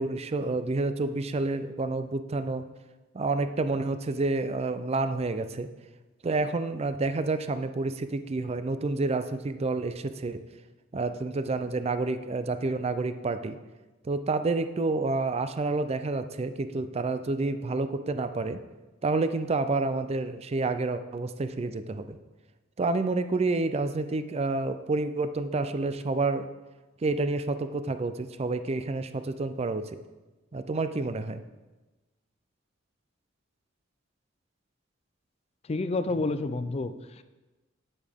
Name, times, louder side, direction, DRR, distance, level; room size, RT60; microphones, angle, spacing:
voice 1, 0.0-2.6 3.1-5.7 6.2-10.4 10.9-13.6 14.0-18.6 19.0-22.2 22.8-26.5 27.0-30.0 30.5-31.4, right 3 dB, 35° right, 11 dB, 0.4 m, -29 dB
voice 2, 35.7-37.2, left 3 dB, 30° left, 12 dB, 0.4 m, -29 dB
9.6 x 8.5 x 3.6 m, 1.2 s
head